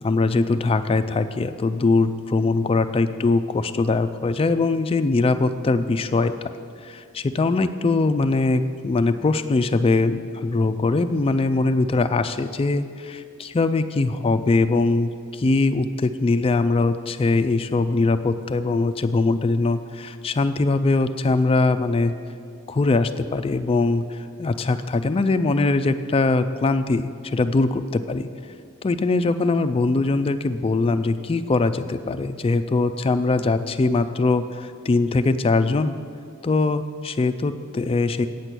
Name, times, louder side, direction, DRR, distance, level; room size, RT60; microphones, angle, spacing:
voice 1, 0.0-6.5 6.8-22.1 22.7-28.3 28.8-36.0 36.4-38.3, left 3 dB, 25° left, 11 dB, 0.3 m, -22 dB
8.8 x 6.0 x 8.2 m, 2.3 s
head